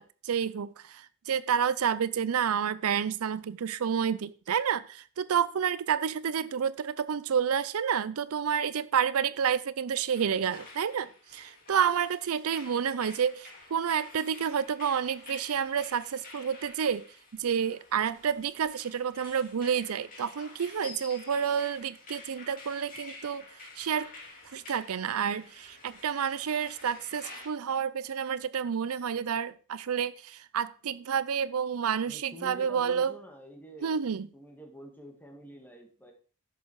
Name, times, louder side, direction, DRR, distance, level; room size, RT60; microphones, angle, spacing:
voice 1, 0.0-17.0 17.3-23.4 23.8-24.1 24.5-33.1 33.8-34.3, right 7 dB, 80° right, 16 dB, 0.5 m, -29 dB
sound 1, 10.1-27.5, left 3 dB, 40° left, 3.2 m, -50 dB
voice 2, 32.1-34.0 34.3-36.1, right 1 dB, 10° left, 3 dB, 2.0 m, -47 dB
11.0 x 7.0 x 4.7 m, 0.40 s
head